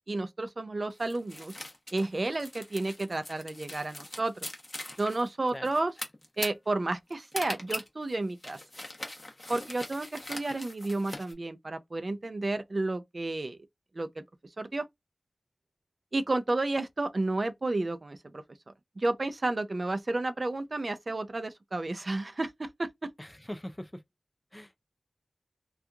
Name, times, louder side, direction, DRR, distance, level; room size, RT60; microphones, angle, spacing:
voice 1, 0.1-1.5 1.9-4.5 5.0-5.9 6.4-8.6 9.5-13.6 13.9-14.2 14.6-14.9 16.1-23.1, right 2 dB, 50° right, 0.4 m, -32 dB
sound 1, 1.0-11.3, left 1 dB, 35° left, 0.9 m, -41 dB
voice 2, 23.2-24.0 24.5-24.8, equal, 15° left, 0.4 m, -41 dB
2.8 x 2.3 x 2.3 m
wide cardioid pair, 55°, 0 cm